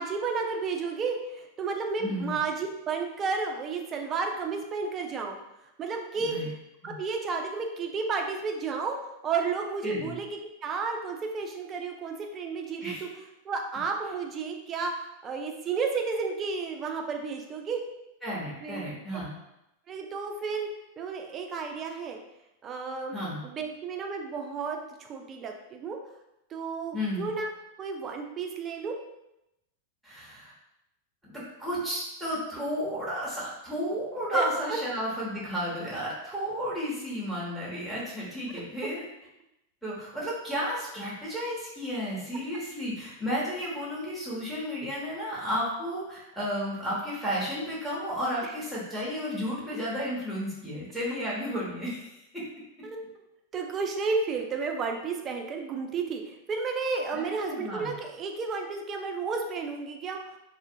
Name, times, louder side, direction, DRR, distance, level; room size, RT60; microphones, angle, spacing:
voice 1, 0.0-5.4 5.8-6.5 6.8-9.0 9.2-17.8 18.6-18.9 19.9-20.7 21.0-22.2 22.6-26.0 26.5-27.5 27.8-28.9 34.3-34.4 48.4-48.5 52.8-53.1 53.5-60.2, right 4 dB, 25° right, 3 dB, 0.3 m, -32 dB
voice 2, 2.0-2.3 6.2-6.5 6.8-6.9 9.8-10.1 12.8-13.0 18.2-19.4 23.1-23.4 26.9-27.3 30.0-30.5 31.2-39.0 39.8-52.4 57.1-58.0, equal, ahead, -7 dB, 0.8 m, -33 dB
2.4 x 2.1 x 2.5 m, 0.88 s
figure-of-eight pair, 90°, 0 cm